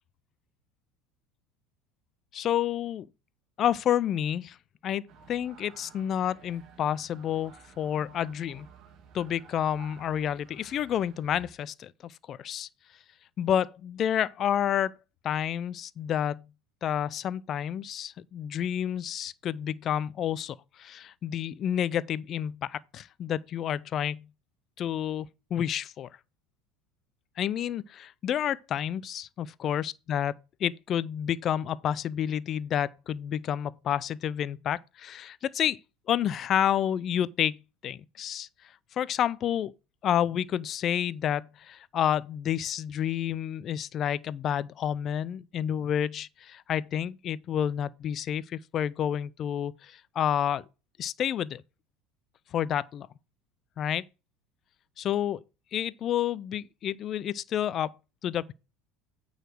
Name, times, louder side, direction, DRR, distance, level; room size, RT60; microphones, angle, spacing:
voice 1, 2.3-3.1 3.6-4.6 4.8-8.7 9.1-12.7 13.4-15.0 15.2-16.5 16.8-24.3 24.8-26.1 27.4-30.3 30.6-35.8 36.1-38.5 39.0-39.7 40.0-50.6 51.0-51.6 52.5-53.1 53.8-54.0 55.0-55.4 55.7-57.9 58.2-58.5, left 10 dB, 45° left, 0.5 m, -29 dB
sound 1, 5.1-11.5, right 6 dB, 45° right, 1.6 m, -54 dB
9.1 x 4.1 x 6.3 m
hypercardioid pair, 75°, 0 cm